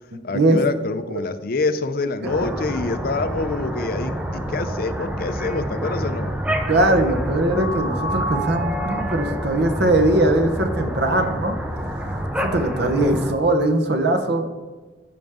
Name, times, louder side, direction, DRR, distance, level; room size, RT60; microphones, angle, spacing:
voice 1, 0.2-6.3, left 3 dB, 50° left, 11 dB, 0.5 m, -26 dB
sound 1, 2.2-13.3, equal, 5° right, 0.6 m, -27 dB
voice 2, 6.7-11.5 12.0-14.5, right 1 dB, 60° right, 7 dB, 1.0 m, -20 dB
14.5 x 5.1 x 3.6 m, 1.3 s
head